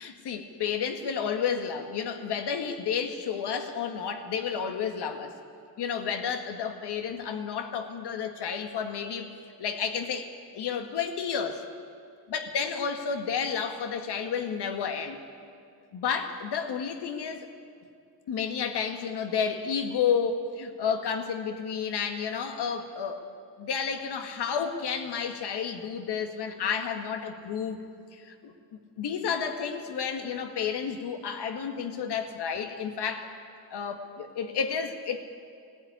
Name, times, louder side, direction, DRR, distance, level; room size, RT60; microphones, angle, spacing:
voice 1, 0.0-5.3 5.8-9.3 9.6-10.3 10.5-11.6 12.3-15.2 15.9-17.5 18.3-23.2 23.6-27.8 28.1-28.5 29.0-33.3 33.7-35.2, left 6 dB, 80° left, 6 dB, 1.9 m, -31 dB
19.0 x 14.5 x 9.7 m, 2.3 s
cardioid pair, 135°, 40 cm